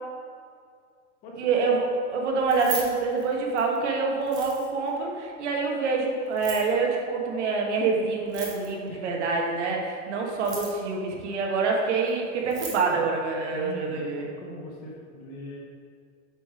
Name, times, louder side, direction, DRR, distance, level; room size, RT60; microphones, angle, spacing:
voice 1, 1.4-14.2, right 4 dB, 70° right, 0 dB, 1.4 m, -26 dB
Keys jangling, 2.4-3.8 4.2-4.9 6.3-6.7 8.2-8.9 10.3-10.9 12.1-12.2 12.4-12.8, right 5 dB, 10° right, 0.3 m, -37 dB
voice 2, 13.5-15.6, left 2 dB, 25° left, -2 dB, 1.0 m, -41 dB
7.5 x 3.3 x 4.9 m, 2.2 s
supercardioid pair, 160°, 36 cm